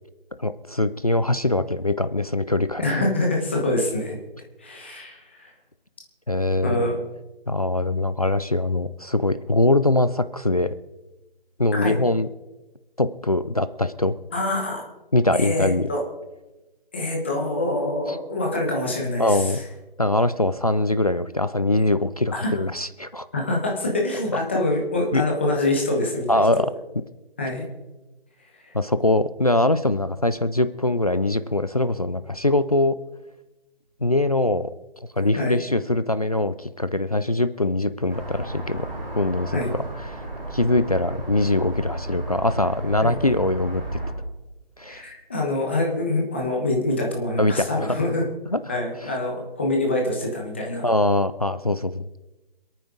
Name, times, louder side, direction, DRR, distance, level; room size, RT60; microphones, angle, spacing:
voice 1, 0.4-2.8 6.3-6.9 7.5-10.7 11.6-12.3 13.0-14.2 15.1-15.9 19.2-19.6 20.0-23.3 25.1-25.2 26.3-26.7 28.7-33.0 34.0-34.7 35.2-38.9 39.2-39.8 40.1-40.2 40.5-44.0 44.8-45.0 47.4-48.0 48.5-48.6 50.8-52.1, left 2 dB, 40° left, 13 dB, 0.5 m, -22 dB
voice 2, 2.8-4.2 4.6-5.5 6.6-7.0 11.7-12.0 14.3-14.8 15.3-16.0 16.9-19.6 22.3-22.6 23.3-26.6 27.4-27.6 28.5-28.7 35.4-35.6 39.5-39.7 43.0-43.2 44.9-48.2 48.7-50.9, left 2 dB, 10° left, 0 dB, 1.2 m, -25 dB
sound 1, 38.1-44.1, right 1 dB, 45° right, 6.4 m, -33 dB
27.0 x 9.1 x 3.9 m, 1.1 s
figure-of-eight pair, 175°, 30 cm